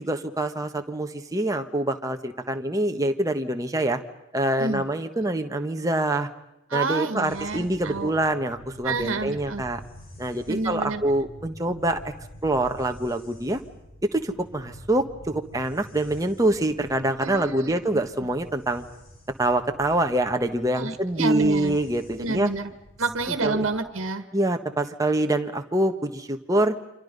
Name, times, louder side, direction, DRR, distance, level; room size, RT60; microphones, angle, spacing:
voice 1, 0.0-4.0 4.3-6.3 6.7-9.8 10.2-12.1 12.4-13.6 14.1-18.8 19.4-22.5 23.4-23.7 24.3-26.7, right 1 dB, 15° right, 5 dB, 1.4 m, -25 dB
voice 2, 6.7-8.1 8.8-9.6 10.5-11.0 17.2-18.0 20.8-21.8 22.2-22.7 23.0-24.3, right 3 dB, 75° right, 9 dB, 1.7 m, -29 dB
sound 1, 7.2-23.8, equal, 45° left, 6.0 m, -47 dB
29.0 x 26.0 x 5.4 m, 0.89 s
head